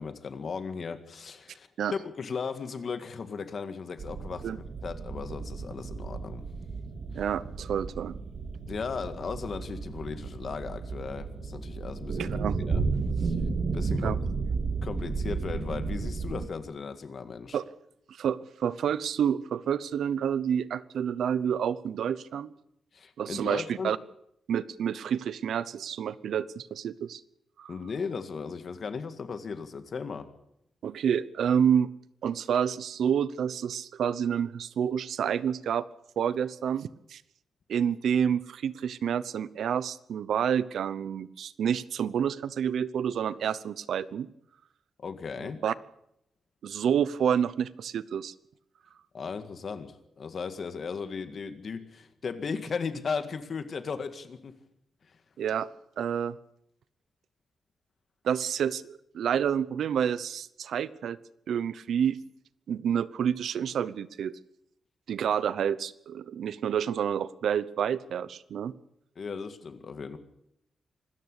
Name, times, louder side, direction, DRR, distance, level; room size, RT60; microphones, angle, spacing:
voice 1, 0.0-6.4 7.1-7.2 8.7-12.4 12.7-12.8 13.2-13.4 13.7-14.2 14.8-17.6 22.9-23.9 27.7-30.3 45.0-45.6 49.1-54.5 69.2-70.2, left 5 dB, 40° left, 10 dB, 1.9 m, -36 dB
sound 1, 4.0-16.5, right 4 dB, 45° right, 2.2 m, -33 dB
voice 2, 7.1-8.2 12.2-12.6 14.0-14.2 17.5-17.6 18.2-22.5 23.2-24.0 24.5-27.2 27.6-27.7 30.8-31.9 32.2-35.8 36.2-37.2 37.7-44.3 45.6-45.7 46.6-48.3 55.4-55.7 56.0-56.4 58.2-61.2 61.5-62.2 62.7-64.3 65.1-68.7, right 8 dB, 70° right, 18 dB, 0.8 m, -29 dB
25.5 x 14.0 x 8.3 m, 0.77 s
wide cardioid pair, 165°, 0 cm